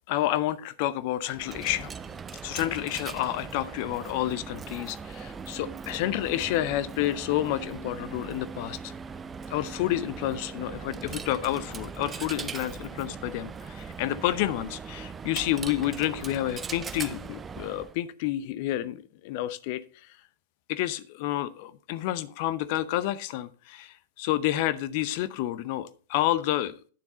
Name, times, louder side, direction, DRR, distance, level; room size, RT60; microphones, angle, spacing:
voice 1, 0.1-1.9 2.4-8.9 9.5-19.8 20.7-26.8, left 14 dB, 50° left, 15 dB, 0.7 m, -29 dB
Coin (dropping), 1.3-18.0, right 5 dB, 20° right, 0.5 m, -40 dB
9.5 x 7.1 x 4.2 m, 0.41 s
figure-of-eight pair, 95°, 0 cm